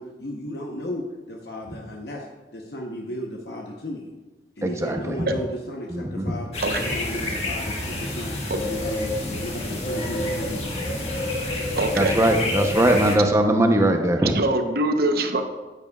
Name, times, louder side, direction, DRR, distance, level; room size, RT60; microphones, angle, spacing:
voice 1, 0.0-2.3 2.5-4.2 4.6-6.5 6.8-11.2, left 1 dB, 65° left, 0 dB, 0.9 m, -34 dB
voice 2, 4.6-5.2 5.9-6.2 11.9-14.3, right 1 dB, 15° right, 4 dB, 0.7 m, -20 dB
sound 1, 6.5-13.2, left 1 dB, 35° left, 1.5 m, -28 dB
voice 3, 11.8-12.2 14.2-15.4, right 2 dB, 60° right, 6 dB, 0.8 m, -23 dB
10.0 x 9.5 x 2.3 m, 1.2 s
head